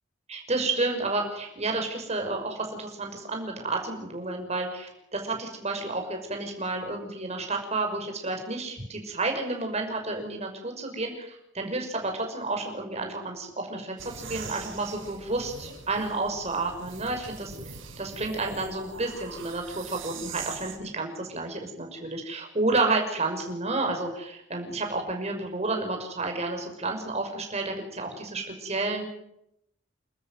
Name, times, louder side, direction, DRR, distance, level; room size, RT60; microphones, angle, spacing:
voice 1, 0.5-17.5 18.0-29.0, right 2 dB, 35° right, 3 dB, 6.0 m, -31 dB
sound 1, 14.0-20.8, right 5 dB, 80° right, 6.4 m, -42 dB
29.0 x 13.5 x 9.5 m, 0.80 s
head